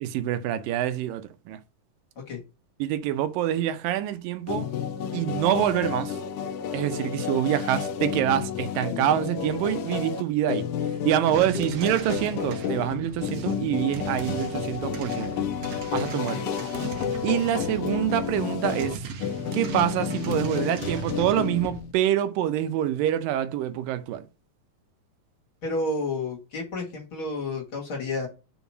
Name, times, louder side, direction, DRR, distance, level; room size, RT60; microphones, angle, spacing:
voice 1, 0.0-1.6 2.8-4.7 5.1-6.2 6.7-10.7 11.0-15.4 15.9-16.4 17.0-19.0 19.5-24.3, right 12 dB, 80° right, 2.4 m, -26 dB
sound 1, 4.5-21.9, left 8 dB, 75° left, 2.1 m, -31 dB
sound 2, 11.3-21.8, right 5 dB, 65° right, 1.6 m, -38 dB
voice 2, 16.1-16.5 25.6-28.3, left 2 dB, 40° left, 2.5 m, -31 dB
5.5 x 5.2 x 5.9 m
omnidirectional pair, 4.0 m